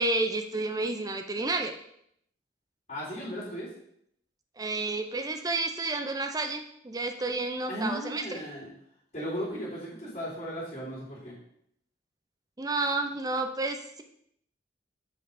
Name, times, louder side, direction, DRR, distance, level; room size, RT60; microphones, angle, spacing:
voice 1, 0.0-1.7 4.6-8.4 12.6-14.0, right 2 dB, 20° right, 6 dB, 0.6 m, -30 dB
voice 2, 2.9-3.7 7.7-8.7 9.1-11.3, equal, 35° left, -8 dB, 3.6 m, -36 dB
7.0 x 5.6 x 5.0 m, 0.72 s
head